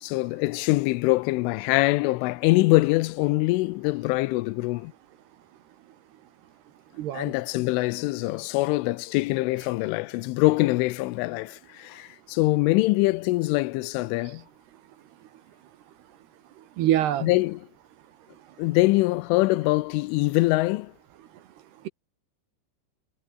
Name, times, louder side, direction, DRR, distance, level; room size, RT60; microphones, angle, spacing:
voice 1, 0.0-4.9 7.1-14.4 17.2-17.6 18.6-20.9, left 21 dB, 90° left, 3.2 m, -23 dB
voice 2, 7.0-7.3 16.8-17.3, right 12 dB, 70° right, 3.0 m, -24 dB
omnidirectional pair, 5.6 m